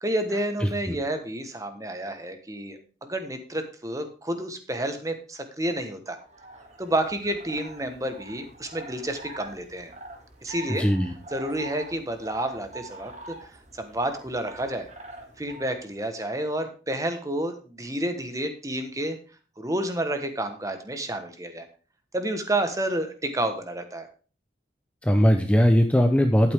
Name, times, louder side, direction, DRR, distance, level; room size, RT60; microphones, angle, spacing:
voice 1, 0.0-6.2 6.8-9.9 10.4-10.8 11.3-14.9 15.4-19.2 19.6-21.6 22.1-24.1, right 1 dB, 20° right, 7 dB, 1.3 m, -30 dB
voice 2, 0.6-1.0 10.8-11.1 25.0-26.5, equal, 5° left, 5 dB, 0.7 m, -20 dB
sound 1, 6.1-15.9, right 2 dB, 40° right, 1.8 m, -44 dB
11.5 x 8.8 x 3.6 m, 0.36 s
head